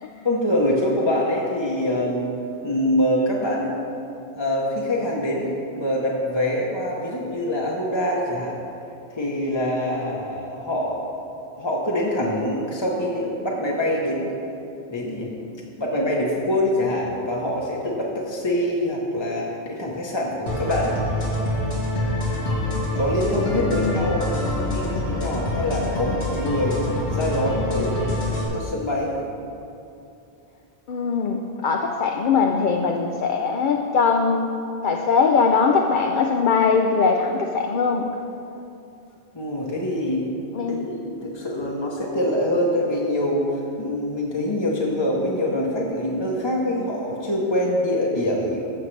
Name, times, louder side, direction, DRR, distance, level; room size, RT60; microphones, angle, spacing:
voice 1, 0.2-2.4 2.6-3.8 4.3-8.6 9.1-11.1 11.5-14.3 14.9-15.3 15.8-21.0 23.0-26.8 27.1-28.1 28.5-29.1 39.3-40.3 40.7-48.7, left 1 dB, 25° left, -3 dB, 0.9 m, -24 dB
sound 1, 20.5-28.5, left 1 dB, 90° left, 1.9 m, -26 dB
voice 2, 23.7-24.1 30.9-34.5 34.8-38.1 40.5-40.9, left 5 dB, 60° left, 3 dB, 0.6 m, -21 dB
14.5 x 6.4 x 3.2 m, 2.7 s
omnidirectional pair, 1.1 m